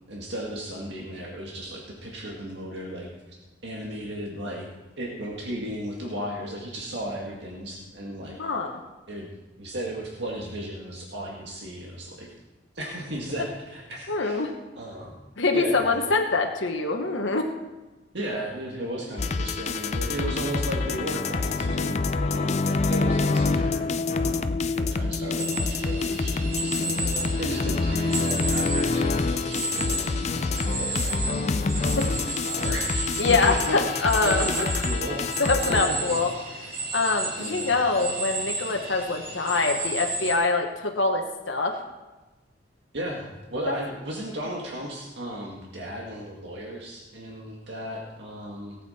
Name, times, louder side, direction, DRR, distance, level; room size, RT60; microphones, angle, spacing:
voice 1, 0.1-3.1 3.6-4.7 5.0-8.4 9.1-9.3 9.6-12.3 12.8-14.4 14.8-15.1 15.5-16.0 18.1-31.3 31.8-36.2 37.4-37.8 42.9-48.8, right 1 dB, 70° right, -2 dB, 1.9 m, -35 dB
voice 2, 8.4-8.8 14.1-14.5 15.4-17.5 26.8-27.3 32.0-32.1 33.2-34.4 35.4-36.3 36.9-41.8 43.7-43.8, left 3 dB, 85° left, 3 dB, 1.2 m, -24 dB
sound 1, 19.2-35.8, left 3 dB, 35° left, 0.4 m, -26 dB
sound 2, 25.4-40.3, right 2 dB, 50° right, 2.4 m, -33 dB
18.0 x 8.5 x 4.3 m, 1.1 s
head